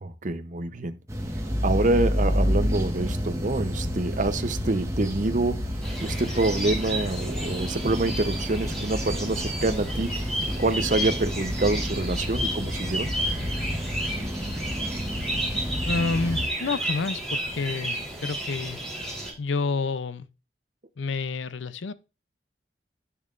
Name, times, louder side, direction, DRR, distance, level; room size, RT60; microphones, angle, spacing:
voice 1, 0.0-1.0 1.6-5.7 6.0-13.1, right 2 dB, 45° right, 0.7 m, -26 dB
sound 1, 1.1-16.5, equal, 15° right, 1.4 m, -29 dB
sound 2, 5.8-19.3, right 1 dB, 5° left, 3.4 m, -32 dB
voice 2, 15.9-18.8 19.4-20.3 21.0-21.9, left 4 dB, 85° left, 0.6 m, -29 dB
10.5 x 6.9 x 2.5 m
head